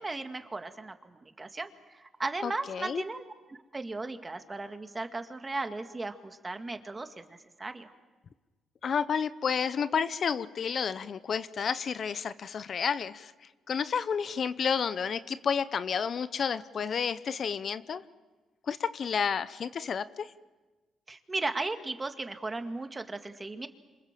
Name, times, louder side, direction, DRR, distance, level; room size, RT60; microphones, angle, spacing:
voice 1, 0.0-7.9 21.1-23.7, right 3 dB, 20° right, 7 dB, 2.1 m, -36 dB
voice 2, 2.4-3.0 8.8-13.3 13.7-18.0 18.7-20.3, left 6 dB, 50° left, 14 dB, 0.8 m, -31 dB
26.5 x 26.5 x 7.6 m, 1.2 s
cardioid pair, 90°, 0 cm